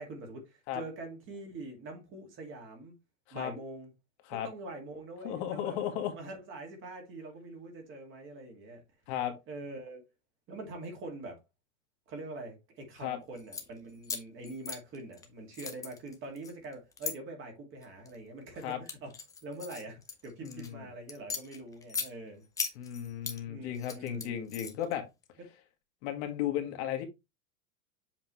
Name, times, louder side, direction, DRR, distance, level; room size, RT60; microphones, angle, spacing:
voice 1, 0.0-2.9 3.3-3.9 4.4-5.8 6.2-8.8 9.5-10.0 10.5-11.4 12.1-19.1 19.4-22.5 23.4-24.5, right 2 dB, 30° right, 2.2 m, -44 dB
voice 2, 5.2-6.1 9.1-9.3 13.0-13.2 18.6-18.8 20.4-20.8 22.7-25.0 26.0-27.0, left 10 dB, 55° left, 1.5 m, -35 dB
sound 1, 13.4-13.7 14.0-15.3 15.5-17.1 17.8-18.2 18.6-20.7 21.1-22.1 22.6-23.4 23.7-24.9, left 5 dB, 10° left, 0.5 m, -38 dB
7.3 x 4.2 x 3.1 m
supercardioid pair, 155°, 42 cm